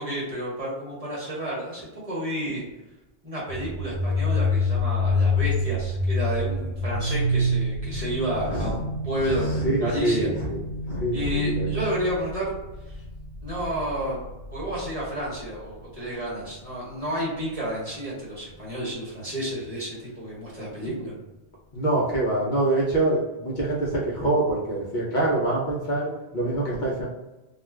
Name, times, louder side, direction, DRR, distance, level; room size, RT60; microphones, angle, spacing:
voice 1, 0.0-2.6 3.2-10.3 11.1-12.5 12.9-13.0 13.4-14.2 14.5-21.1, right 1 dB, 35° right, -6 dB, 0.9 m, -31 dB
sound 1, 3.5-15.0, left 2 dB, 80° left, 0.9 m, -27 dB
voice 2, 9.2-10.6 10.9-11.8 20.9-21.0 21.7-27.1, right 1 dB, 55° left, -5 dB, 0.7 m, -25 dB
2.4 x 2.3 x 3.2 m, 1.0 s
omnidirectional pair, 1.1 m